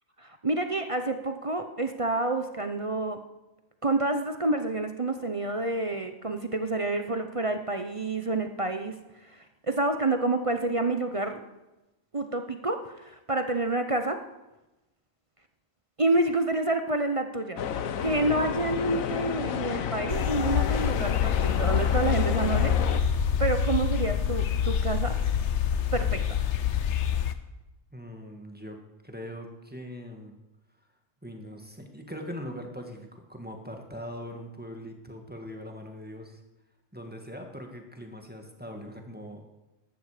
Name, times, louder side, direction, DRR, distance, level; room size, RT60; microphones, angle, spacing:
voice 1, 0.2-3.2 3.8-8.9 9.2-11.4 12.1-14.2 16.0-17.7 18.0-23.1 23.4-25.2 25.9-26.4, right 2 dB, 30° right, 7 dB, 0.7 m, -28 dB
sound 1, 17.6-23.0, left 8 dB, 85° left, 1.3 m, -31 dB
sound 2, 20.1-27.3, left 8 dB, 65° left, 1.1 m, -26 dB
voice 2, 27.9-28.8 29.0-30.3 31.2-36.4 36.9-39.4, equal, 5° right, 3 dB, 1.7 m, -41 dB
15.0 x 12.0 x 5.0 m, 1.0 s
omnidirectional pair, 1.4 m